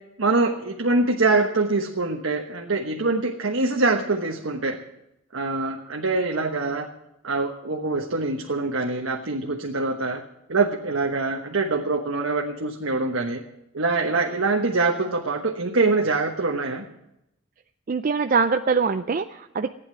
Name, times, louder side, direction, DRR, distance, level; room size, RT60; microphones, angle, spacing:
voice 1, 0.2-4.8 5.3-6.9 7.2-10.2 10.5-13.4 13.7-16.9, right 3 dB, 80° right, 1 dB, 1.2 m, -24 dB
voice 2, 17.9-19.7, right 5 dB, 40° right, 9 dB, 0.4 m, -23 dB
15.5 x 9.7 x 7.6 m, 0.86 s
head